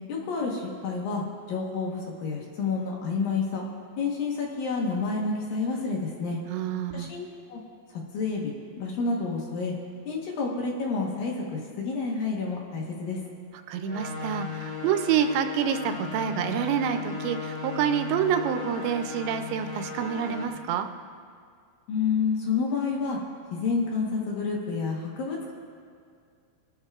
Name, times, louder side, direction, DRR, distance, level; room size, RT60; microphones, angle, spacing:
voice 1, 0.1-1.2 1.5-3.6 4.0-6.4 6.9-7.6 7.9-9.7 10.1-13.2 21.9-23.2 23.5-25.5, left 4 dB, 65° left, -2 dB, 2.6 m, -29 dB
voice 2, 6.5-7.1 13.7-20.9, right 8 dB, 90° right, 7 dB, 2.9 m, -27 dB
sound 1, 13.8-20.4, left 5 dB, 10° left, 1.7 m, -36 dB
22.0 x 12.5 x 2.4 m, 2.2 s
omnidirectional pair, 5.0 m